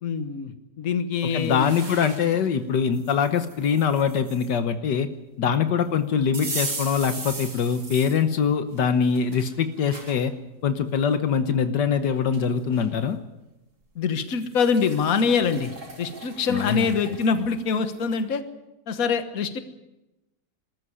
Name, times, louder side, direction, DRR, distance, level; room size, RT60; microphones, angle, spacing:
voice 1, 0.0-1.7 13.9-15.7 16.0-18.4 18.9-19.6, left 5 dB, 55° left, 10 dB, 1.7 m, -24 dB
voice 2, 1.3-5.1 5.4-10.3 10.6-13.2 16.5-16.9, left 7 dB, 75° left, 9 dB, 1.7 m, -23 dB
sound 1, 1.3-2.4 2.9-4.5 6.3-8.2 8.8-10.2 10.8-10.9 12.0-12.1 12.3-12.9 14.2-18.2, right 3 dB, 60° right, 3.6 m, -38 dB
22.0 x 13.5 x 9.8 m, 0.98 s
omnidirectional pair, 1.9 m